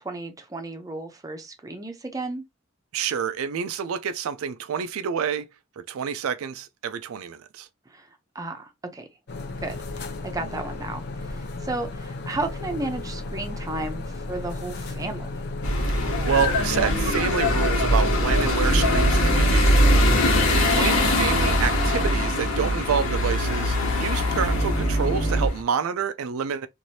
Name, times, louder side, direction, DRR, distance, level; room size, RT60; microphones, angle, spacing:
voice 1, 0.0-2.4 7.9-8.1 8.3-9.1 9.6-15.4, right 2 dB, 15° right, 0.6 m, -34 dB
voice 2, 2.9-5.5 5.8-7.7 15.9-19.8 20.7-26.7, right 7 dB, 85° right, 0.4 m, -28 dB
sound 1, 9.3-18.5, left 2 dB, 50° left, 0.6 m, -34 dB
sound 2, 15.6-25.6, left 1 dB, 80° left, 1.4 m, -22 dB
sound 3, 18.6-25.5, right 2 dB, 20° left, 1.1 m, -29 dB
3.1 x 2.5 x 2.7 m
head